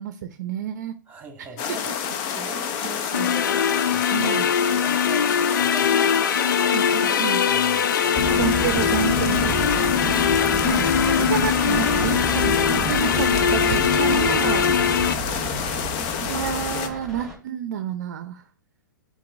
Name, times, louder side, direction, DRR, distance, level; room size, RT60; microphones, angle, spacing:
voice 1, 0.0-0.9 2.3-2.4 3.1-3.3 4.1-4.5 6.7-7.4 8.4-9.6 10.5-14.7 16.2-18.4, right 9 dB, 55° right, 0.6 m, -29 dB
voice 2, 1.1-10.3 14.3-14.6 15.0-15.3, right 2 dB, 15° right, 1.5 m, -41 dB
sound 1, 1.6-16.9, left 8 dB, 35° left, 0.7 m, -29 dB
sound 2, 3.1-15.1, left 7 dB, 70° left, 0.4 m, -22 dB
sound 3, 8.2-17.3, right 1 dB, 5° left, 2.4 m, -30 dB
11.0 x 3.9 x 2.6 m
figure-of-eight pair, 110°, 11 cm